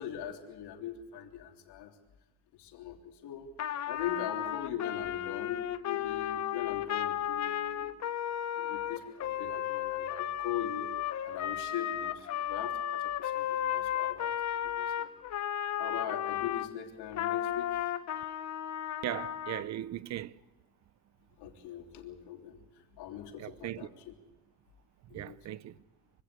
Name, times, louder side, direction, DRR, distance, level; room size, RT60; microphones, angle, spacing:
voice 1, 0.0-2.0 2.5-7.9 8.6-15.1 15.8-17.9 21.4-24.1 25.1-25.4, left 10 dB, 65° left, 3.4 m, -41 dB
Trumpet, 3.6-16.7 17.1-19.7, left 11 dB, 40° left, 1.0 m, -34 dB
voice 2, 19.0-20.3 23.4-23.9 25.1-25.7, right 13 dB, 40° right, 0.7 m, -38 dB
24.5 x 16.5 x 8.2 m
cardioid pair, 135°, 43 cm